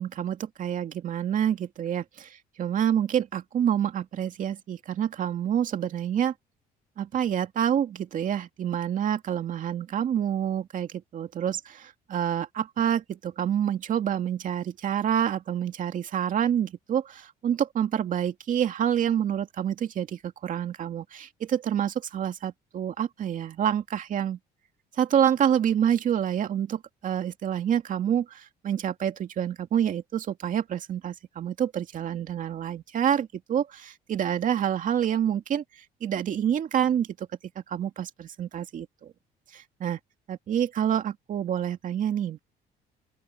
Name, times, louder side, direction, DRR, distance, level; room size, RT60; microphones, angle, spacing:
voice 1, 0.0-6.3 7.0-24.4 25.0-35.6 36.0-37.3 37.7-38.9 39.8-40.0 40.3-42.4, right 9 dB, 50° right, 2.4 m, -27 dB
open air
cardioid pair, 110°, 17 cm